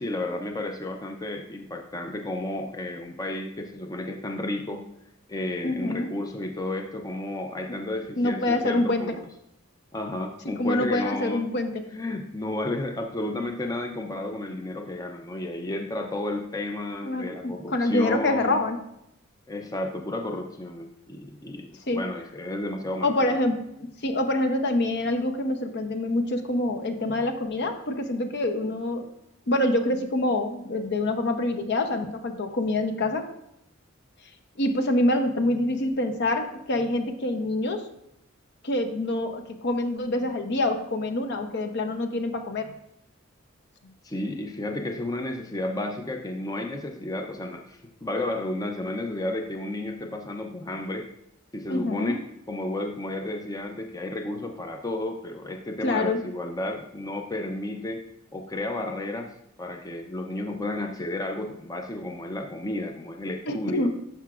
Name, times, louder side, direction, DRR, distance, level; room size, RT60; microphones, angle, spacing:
voice 1, 0.0-4.9 5.3-9.2 9.9-11.4 11.9-18.6 19.5-23.4 44.0-51.1 51.5-52.2 52.5-58.0 58.3-59.3 59.6-63.9, left 1 dB, 20° left, 4 dB, 0.5 m, -32 dB
voice 2, 5.6-6.1 7.7-7.8 8.2-9.2 10.4-11.8 17.0-18.8 21.9-22.0 23.0-29.1 29.5-33.3 34.6-37.8 38.6-42.7 51.7-52.2 55.8-56.2 63.5-64.0, left 1 dB, 55° left, 6 dB, 0.7 m, -26 dB
11.5 x 5.6 x 2.4 m, 0.79 s
head